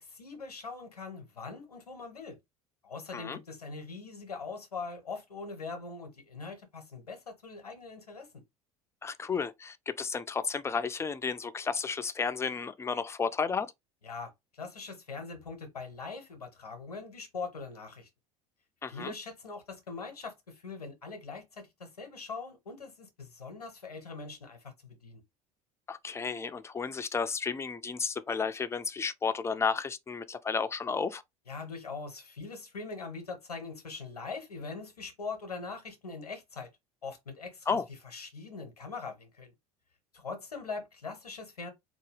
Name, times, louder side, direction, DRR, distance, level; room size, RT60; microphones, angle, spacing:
voice 1, 0.0-2.4 2.8-8.4 14.0-18.1 18.9-25.2 31.5-36.7 37.0-37.8 38.1-39.5 40.1-41.7, left 4 dB, 80° left, 0.8 m, -42 dB
voice 2, 9.0-13.7 18.8-19.1 25.9-31.2 37.7-37.9, left 5 dB, 15° left, 0.4 m, -32 dB
3.8 x 2.2 x 3.2 m
figure-of-eight pair, 65°, 19 cm